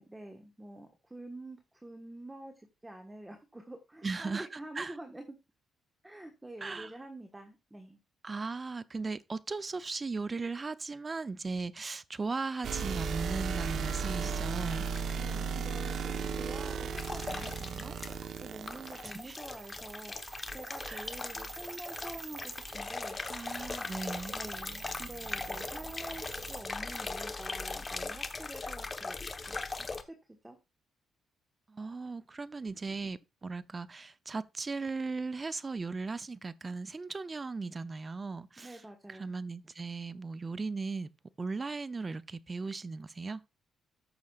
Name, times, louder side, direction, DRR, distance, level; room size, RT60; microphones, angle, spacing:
voice 1, 0.0-5.4 6.0-8.0 15.1-18.0 18.4-23.2 24.3-29.2 29.5-30.2 30.4-30.6 38.6-39.3, right 1 dB, 10° right, 1.4 m, -47 dB
voice 2, 4.0-4.5 4.8-4.9 6.6-6.9 8.2-14.9 19.0-19.4 20.9-21.1 23.3-24.3 31.7-38.8 39.1-41.1 41.4-43.4, right 4 dB, 30° right, 0.6 m, -37 dB
sound 1, 12.6-26.6, right 6 dB, 65° right, 1.0 m, -38 dB
sound 2, 14.6-15.2 16.9-18.4 18.7-30.0, left 3 dB, 25° left, 1.1 m, -40 dB
14.0 x 6.4 x 2.4 m
cardioid pair, 90°, 0 cm